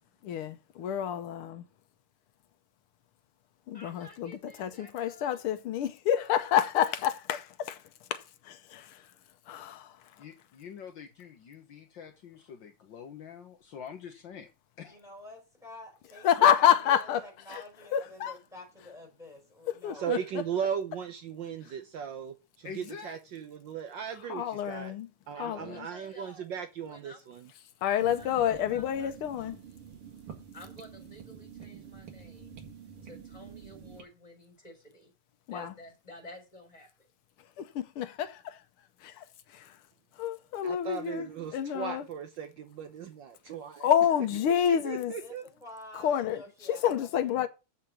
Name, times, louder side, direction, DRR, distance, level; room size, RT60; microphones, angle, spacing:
voice 1, 0.2-1.6 3.7-10.3 16.2-17.6 17.9-18.3 19.7-20.4 21.6-21.7 24.1-25.9 27.8-29.6 35.5-35.7 37.4-39.9 40.1-42.1 43.8-45.1 45.9-47.5, left 9 dB, 85° left, 1.8 m, -29 dB
voice 2, 3.7-5.4 25.3-26.5 26.9-27.2 28.2-29.1 29.5-29.7 30.3-32.6 33.0-35.1 35.5-37.1, left 1 dB, 15° left, 4.0 m, -52 dB
voice 3, 10.2-14.5 14.8-15.0 16.4-16.5 22.6-23.2 25.6-25.7, left 7 dB, 65° left, 1.8 m, -45 dB
voice 4, 14.9-20.1 45.2-47.1, left 1 dB, ahead, 5.4 m, -49 dB
voice 5, 20.0-24.4 24.7-24.9 25.3-27.5 40.6-43.9 44.8-45.4, right 8 dB, 65° right, 1.4 m, -37 dB
sound 1, 28.0-34.0, right 7 dB, 85° right, 2.8 m, -48 dB
7.5 x 6.5 x 7.1 m
omnidirectional pair, 2.3 m